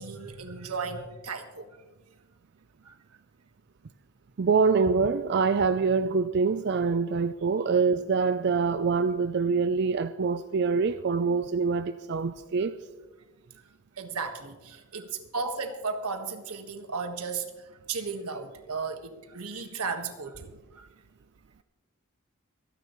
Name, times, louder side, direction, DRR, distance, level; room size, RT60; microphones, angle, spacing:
voice 1, 0.0-1.7 2.8-2.9 14.0-17.5 17.9-20.9, right 4 dB, 85° right, 1.5 m, -35 dB
voice 2, 4.4-12.7, right 5 dB, 50° right, 0.4 m, -25 dB
26.0 x 10.0 x 3.1 m
head